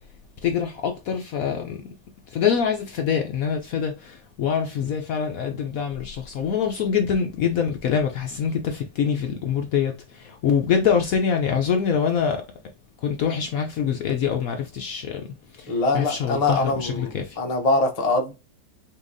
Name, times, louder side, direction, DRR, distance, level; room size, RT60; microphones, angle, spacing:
voice 1, 0.4-1.8 2.3-12.4 13.0-15.2 15.6-15.7 15.9-17.4, left 7 dB, 65° left, 0.9 m, -24 dB
voice 2, 15.7-18.3, left 2 dB, 35° left, 0.5 m, -23 dB
5.6 x 2.9 x 2.5 m
omnidirectional pair, 1.9 m